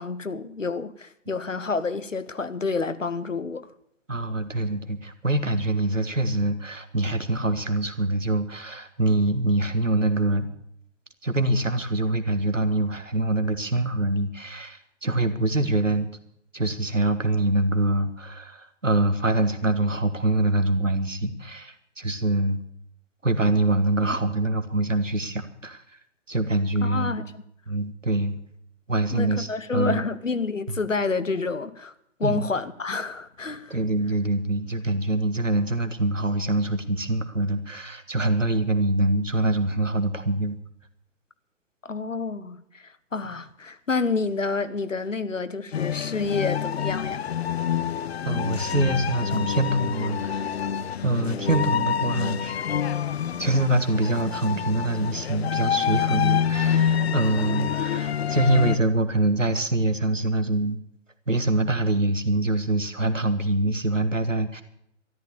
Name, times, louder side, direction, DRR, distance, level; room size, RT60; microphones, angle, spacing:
voice 1, 0.0-3.7 26.8-27.2 29.1-31.9 32.2-33.7 41.8-47.2, left 4 dB, 85° left, 1.2 m, -29 dB
voice 2, 4.1-10.5 11.2-16.1 16.5-22.6 23.2-25.8 26.3-27.2 27.7-28.4 28.9-30.0 32.2-32.5 33.7-40.6 48.2-50.5 51.0-52.6 53.4-60.8 61.3-64.6, right 2 dB, 90° right, 1.6 m, -24 dB
sound 1, 45.7-58.8, left 8 dB, 55° left, 0.7 m, -27 dB
13.0 x 11.5 x 6.9 m
figure-of-eight pair, 120°, 37 cm